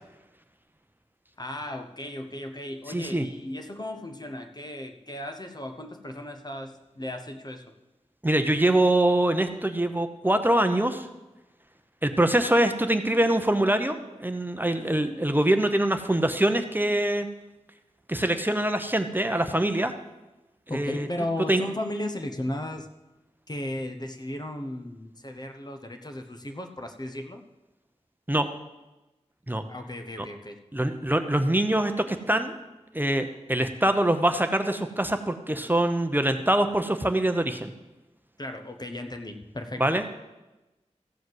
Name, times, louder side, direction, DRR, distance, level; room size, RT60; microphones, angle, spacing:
voice 1, 1.4-7.6 20.7-22.9 23.5-27.4 29.7-30.6 38.4-39.8, left 1 dB, 35° left, 5 dB, 0.9 m, -35 dB
voice 2, 2.9-3.3 8.2-11.1 12.0-17.3 18.1-19.9 20.7-21.1 21.5-21.6 28.3-28.5 29.5-29.6 30.2-30.3 30.7-32.5 32.9-37.7 39.8-40.0, right 1 dB, 15° right, 7 dB, 0.8 m, -24 dB
14.5 x 5.0 x 7.9 m, 1.0 s
wide cardioid pair, 65°, 12 cm